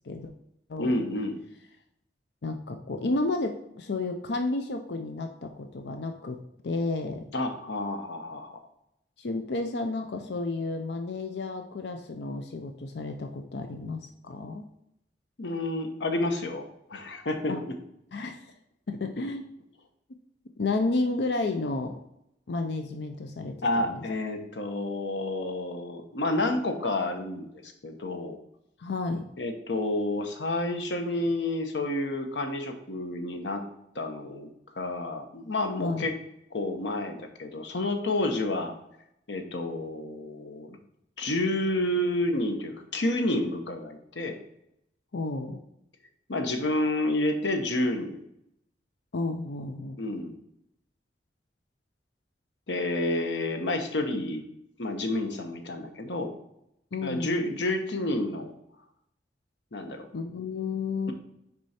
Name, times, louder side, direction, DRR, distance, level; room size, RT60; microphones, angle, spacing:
voice 1, 0.8-1.4 7.3-8.6 15.4-16.6 16.9-17.7 23.6-28.4 29.4-33.6 33.9-34.5 34.8-36.1 36.5-38.7 39.3-40.8 41.2-44.4 46.3-48.2 50.0-50.4 52.7-54.5 54.8-56.3 57.0-58.5 59.7-60.1, left 1 dB, 85° left, 5 dB, 1.0 m, -29 dB
voice 2, 2.4-6.4 6.6-7.3 9.2-14.7 17.5-17.6 18.1-18.5 18.9-19.4 20.6-22.0 22.5-24.0 28.8-29.3 35.8-36.1 45.1-45.6 49.1-50.0 56.9-57.5 60.1-61.1, left 3 dB, 70° left, 6 dB, 0.6 m, -31 dB
6.2 x 4.5 x 4.2 m, 0.80 s
head